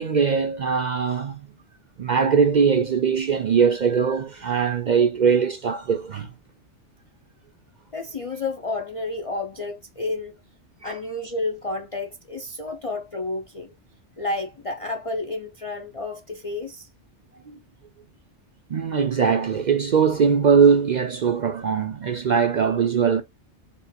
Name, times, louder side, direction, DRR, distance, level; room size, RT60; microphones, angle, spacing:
voice 1, 0.0-1.5 2.0-6.3 10.8-10.9 12.7-12.8 17.5-17.6 18.7-23.2, right 6 dB, 55° right, 0.5 m, -21 dB
voice 2, 7.9-10.4 10.8-13.7 14.2-16.9, left 2 dB, 45° left, 0.4 m, -31 dB
4.2 x 3.6 x 2.2 m
omnidirectional pair, 1.2 m